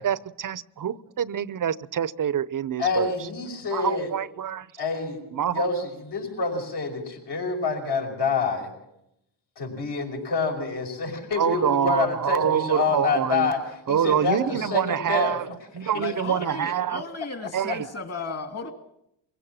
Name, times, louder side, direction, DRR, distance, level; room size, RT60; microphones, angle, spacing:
voice 1, 0.0-3.1 3.7-4.7 5.3-5.7 11.4-13.5 13.9-15.5 15.7-17.0 17.5-17.9, right 9 dB, 45° right, 18 dB, 0.8 m, -26 dB
voice 2, 2.8-4.1 4.8-5.2 5.5-8.7 9.6-13.6 13.9-15.4 15.8-16.1, left 4 dB, 60° left, 1 dB, 5.6 m, -27 dB
voice 3, 15.9-18.7, left 4 dB, 35° left, 7 dB, 2.7 m, -35 dB
23.5 x 16.5 x 7.5 m, 0.80 s
cardioid pair, 70°, 45 cm